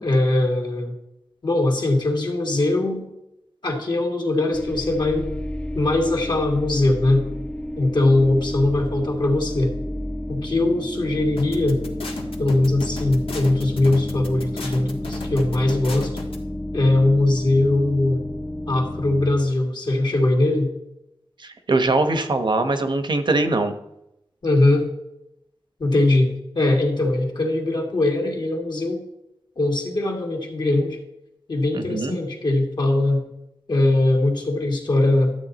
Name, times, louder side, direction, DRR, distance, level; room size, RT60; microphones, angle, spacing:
voice 1, 0.0-0.9 1.4-3.1 3.6-5.4 5.7-7.3 7.8-9.7 10.3-11.8 12.4-16.1 16.7-18.2 18.7-20.7 24.4-24.9 25.8-29.0 29.6-31.0 31.5-33.2 33.7-35.3, left 2 dB, 50° left, 2 dB, 2.1 m, -21 dB
sound 1, 4.5-19.3, left 1 dB, 15° left, 0.7 m, -31 dB
sound 2, 11.4-16.4, left 3 dB, 75° left, 1.5 m, -36 dB
voice 2, 21.4-23.8 31.7-32.2, right 2 dB, 55° right, 8 dB, 1.1 m, -22 dB
12.0 x 8.2 x 4.1 m, 0.84 s
wide cardioid pair, 105°, 10 cm